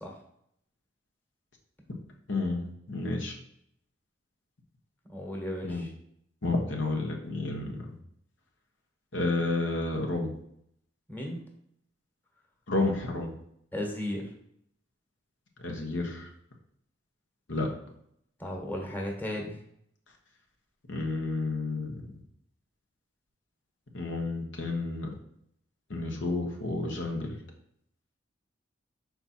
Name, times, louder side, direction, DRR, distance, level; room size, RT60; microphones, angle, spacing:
voice 1, 2.3-3.3 5.6-5.8 6.4-7.8 9.1-10.3 12.7-13.3 15.6-16.3 17.5-17.7 20.9-21.9 23.9-25.1 25.9-27.4, left 2 dB, 85° left, 1 dB, 1.3 m, -30 dB
voice 2, 5.1-5.9 11.1-11.4 13.7-14.3 18.4-19.6, left 1 dB, 10° left, 1 dB, 1.2 m, -35 dB
5.9 x 4.4 x 4.3 m, 0.71 s
head